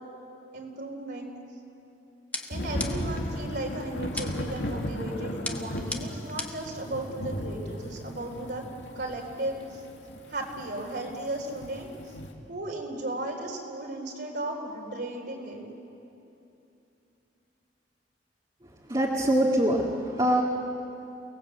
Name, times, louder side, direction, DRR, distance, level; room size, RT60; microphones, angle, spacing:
voice 1, 0.5-1.3 2.5-8.6 8.9-9.8 10.3-12.1 12.5-15.6, right 1 dB, 65° right, -1 dB, 4.2 m, -35 dB
sound 1, 2.3-3.2 4.2-4.6 5.4-6.7, left 2 dB, 10° left, 1.4 m, -36 dB
Thunder / Rain, 2.5-12.3, left 1 dB, 85° left, 2.4 m, -36 dB
voice 2, 18.9-20.4, right 1 dB, 25° right, -4 dB, 2.2 m, -24 dB
29.0 x 19.0 x 8.2 m, 2.8 s
head